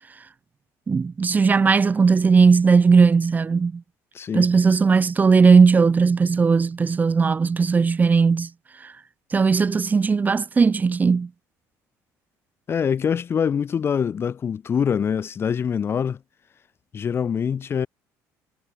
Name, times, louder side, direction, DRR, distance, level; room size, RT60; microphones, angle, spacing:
voice 1, 0.9-3.8 4.3-8.5 8.8-8.9 9.3-11.3, right 5 dB, 25° right, 0.9 m, -17 dB
voice 2, 4.1-4.5 12.7-16.2 16.9-17.9, left 7 dB, 35° left, 0.8 m, -24 dB
cardioid pair, 110°, 7 cm